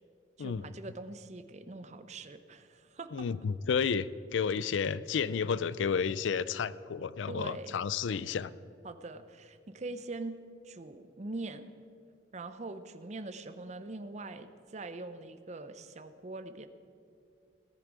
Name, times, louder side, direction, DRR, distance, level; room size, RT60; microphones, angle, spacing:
voice 1, 0.4-3.3 7.3-7.7 8.8-10.3 10.6-11.6 12.3-16.7, right 2 dB, 40° right, 10 dB, 0.6 m, -43 dB
voice 2, 3.1-8.5, left 6 dB, 85° left, 17 dB, 0.4 m, -31 dB
18.0 x 10.0 x 4.8 m, 2.4 s
head